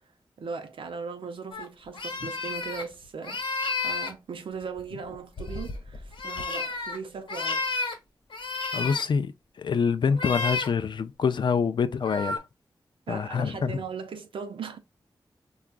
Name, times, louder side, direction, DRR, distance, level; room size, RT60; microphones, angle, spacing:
voice 1, 0.4-3.4 3.8-7.7 13.1-14.8, right 5 dB, 90° right, 0.7 m, -38 dB
sound 1, 1.5-1.7 1.9-2.8 3.2-4.1 4.8-7.0 7.3-7.9 8.3-9.0 10.1-10.7 12.0-12.4, left 3 dB, 80° left, 1.0 m, -31 dB
voice 2, 8.7-9.3 9.6-12.4 13.1-13.8, left 6 dB, 65° left, 0.4 m, -26 dB
4.8 x 2.3 x 2.4 m
wide cardioid pair, 105°, 9 cm